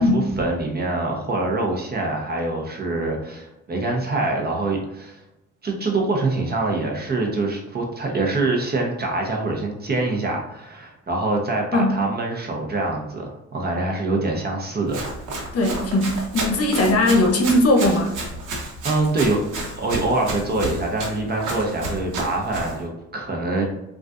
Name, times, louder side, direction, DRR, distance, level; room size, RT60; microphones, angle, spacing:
voice 1, 0.0-5.2 5.6-15.1 18.8-19.4 19.7-23.6, right 2 dB, 30° right, 1 dB, 0.8 m, -25 dB
Run, 14.9-22.8, right 2 dB, 80° right, 1.0 m, -31 dB
voice 2, 15.5-18.1, left 1 dB, 50° left, 2 dB, 0.8 m, -19 dB
3.8 x 2.5 x 2.4 m, 0.88 s
cardioid pair, 90°, 30 cm